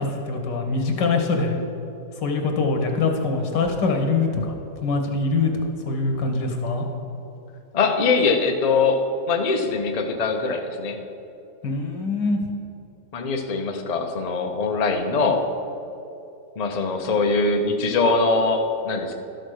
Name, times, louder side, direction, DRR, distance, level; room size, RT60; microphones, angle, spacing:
voice 1, 0.0-1.6 2.2-5.5 5.9-6.8 11.6-12.4, left 3 dB, 85° left, 3 dB, 1.9 m, -23 dB
voice 2, 7.7-9.0 9.3-11.0 13.1-15.5 16.6-19.2, left 4 dB, 35° left, 4 dB, 0.6 m, -22 dB
12.5 x 6.3 x 6.4 m, 2.8 s
omnidirectional pair, 1.8 m